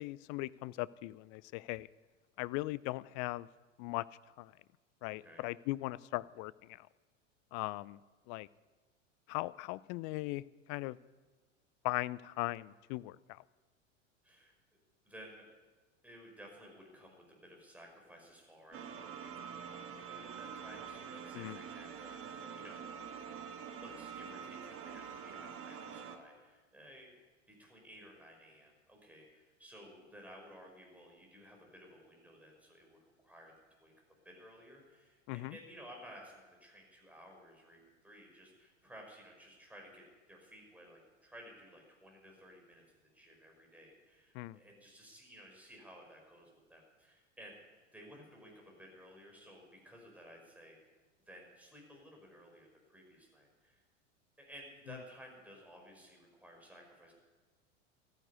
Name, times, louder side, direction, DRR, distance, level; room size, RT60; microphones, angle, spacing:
voice 1, 0.0-1.9 2.4-3.5 3.8-4.1 4.4-4.5 5.0-6.9 7.5-8.0 8.3-8.5 9.3-10.4 10.7-11.0 11.8-13.4 21.3-21.6 35.3-35.6 44.3-44.6, left 20 dB, 45° left, 20 dB, 0.5 m, -39 dB
voice 2, 5.1-5.4 14.2-14.5 15.1-15.5 16.0-23.1 23.8-27.1 27.5-33.0 33.2-33.5 33.8-33.9 34.2-42.8 43.1-47.6 47.9-50.8 51.3-53.8 54.4-57.2, equal, 5° right, 0 dB, 5.2 m, -55 dB
sound 1, 18.7-26.2, right 7 dB, 35° right, 1.6 m, -46 dB
13.5 x 10.5 x 9.4 m, 1.3 s
hypercardioid pair, 90°, 38 cm